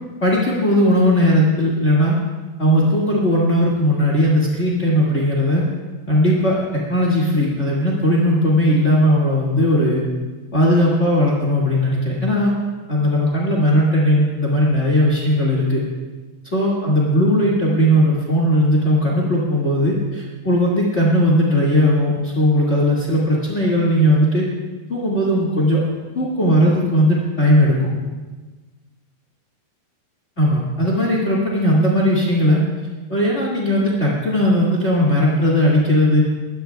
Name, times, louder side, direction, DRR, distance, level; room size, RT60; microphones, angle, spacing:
voice 1, 0.2-2.2 2.6-5.6 6.1-10.0 10.5-12.5 12.9-15.8 16.5-24.5 24.9-25.8 26.1-27.9 30.4-32.6 33.1-36.2, equal, 40° left, -4 dB, 1.0 m, -17 dB
23.0 x 17.5 x 2.3 m, 1.3 s
omnidirectional pair, 4.8 m